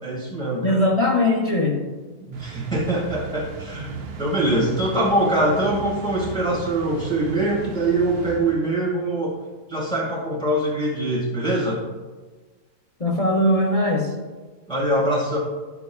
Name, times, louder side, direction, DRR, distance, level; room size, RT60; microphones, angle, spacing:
voice 1, 0.0-0.8 2.2-9.4 9.7-11.8 14.7-15.4, right 1 dB, 5° left, -4 dB, 1.8 m, -23 dB
voice 2, 0.6-1.8 13.0-14.2, left 1 dB, 35° left, 0 dB, 0.5 m, -20 dB
sound 1, 2.3-9.0, right 5 dB, 80° right, 1.3 m, -37 dB
12.0 x 7.0 x 2.3 m, 1.3 s
omnidirectional pair, 1.6 m